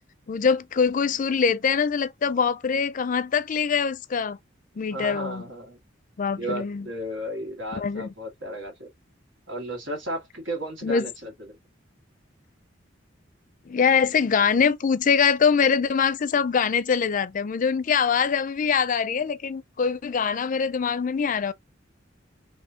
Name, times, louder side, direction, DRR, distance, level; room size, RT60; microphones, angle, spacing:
voice 1, 0.3-4.4 4.8-5.4 6.2-6.9 7.7-8.1 10.8-11.1 13.7-21.5, left 6 dB, 40° left, 0.4 m, -23 dB
voice 2, 4.9-5.8 6.4-8.9 9.5-11.3, right 1 dB, 90° right, 2.1 m, -34 dB
4.3 x 3.0 x 2.8 m
head